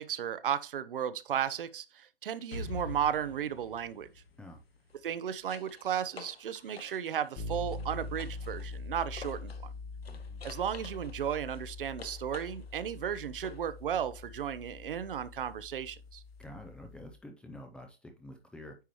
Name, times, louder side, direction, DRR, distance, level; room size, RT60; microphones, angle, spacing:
voice 1, 0.0-4.1 5.0-9.7 10.4-16.2, right 9 dB, 65° right, 0.8 m, -34 dB
sound 1, 2.2-2.5 4.8-9.7 10.0-13.8 16.4-16.5, left 6 dB, 85° left, 1.2 m, -52 dB
Explosion, 2.5-6.3, left 4 dB, 65° left, 2.3 m, -45 dB
sound 2, 7.3-17.2, left 3 dB, 25° left, 1.5 m, -43 dB
voice 2, 10.1-10.4 16.4-18.8, left 1 dB, 5° left, 0.4 m, -48 dB
9.2 x 4.8 x 3.0 m
hypercardioid pair, 130°, 30 cm